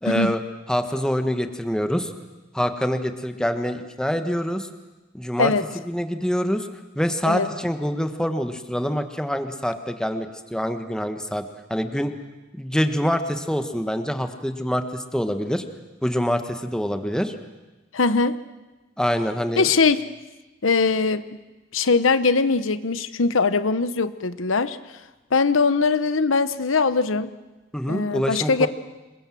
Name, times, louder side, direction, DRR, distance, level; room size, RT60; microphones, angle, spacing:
voice 1, 0.0-0.4 0.7-2.1 2.5-4.7 5.1-5.5 5.8-6.7 6.9-11.4 11.7-12.1 12.5-15.6 16.0-17.3 19.0-19.7 27.7-28.7, equal, 5° left, 7 dB, 1.5 m, -25 dB
voice 2, 17.9-18.3 19.6-20.0 20.6-21.3 21.7-24.8 25.3-27.3 27.9-28.7, left 4 dB, 90° left, 13 dB, 1.0 m, -21 dB
27.0 x 22.0 x 7.7 m, 1.1 s
head